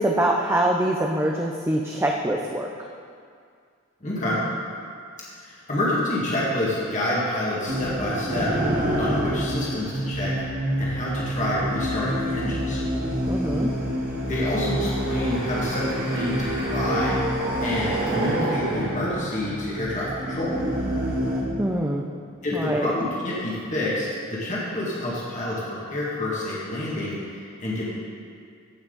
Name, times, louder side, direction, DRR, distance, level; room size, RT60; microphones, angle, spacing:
voice 1, 0.0-2.7 13.3-13.7 21.6-22.0 22.5-22.9, right 1 dB, 10° right, 0 dB, 0.5 m, -24 dB
voice 2, 4.0-4.4 5.4-8.5 9.0-10.3 10.8-12.8 14.3-20.5 22.4-27.9, left 1 dB, 35° left, -7 dB, 2.0 m, -28 dB
sound 1, 7.7-21.4, right 1 dB, 45° right, 1.6 m, -27 dB
15.0 x 6.0 x 4.0 m, 2.2 s
head